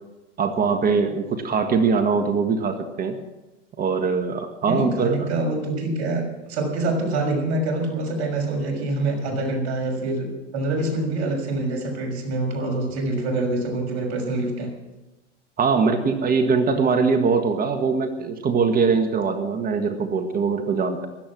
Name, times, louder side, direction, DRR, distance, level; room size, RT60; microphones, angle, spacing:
voice 1, 0.4-3.2 3.8-5.3 15.6-21.1, right 5 dB, 25° right, 7 dB, 1.6 m, -22 dB
voice 2, 4.7-10.3 10.5-14.7, right 2 dB, 50° right, 2 dB, 6.5 m, -25 dB
16.5 x 12.5 x 6.2 m, 1.1 s
hypercardioid pair, 115°, 36 cm